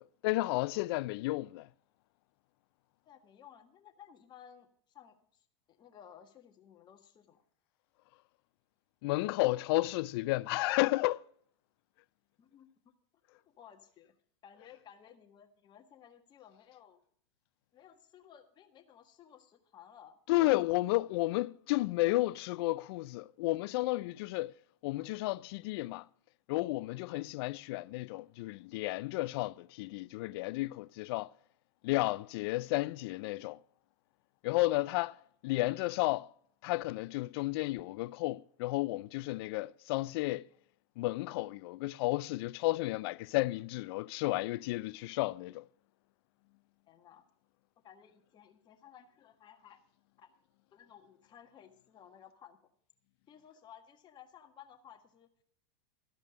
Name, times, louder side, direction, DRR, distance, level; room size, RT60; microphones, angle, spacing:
voice 1, 0.0-1.7 9.0-11.2 20.3-24.5 24.8-26.0 26.5-31.3 31.8-33.6 34.4-35.2 35.4-36.3 36.6-40.5 41.0-45.7, left 19 dB, 60° left, 0.4 m, -32 dB
voice 2, 3.1-7.4 12.4-12.9 13.3-14.1 14.4-17.0 17.7-20.2 26.9-27.2 46.9-47.2 47.8-49.8 50.2-50.3 50.7-52.6 53.3-55.3, left 9 dB, 30° left, 1.6 m, -57 dB
14.0 x 5.2 x 8.6 m
hypercardioid pair, 120°, 15 cm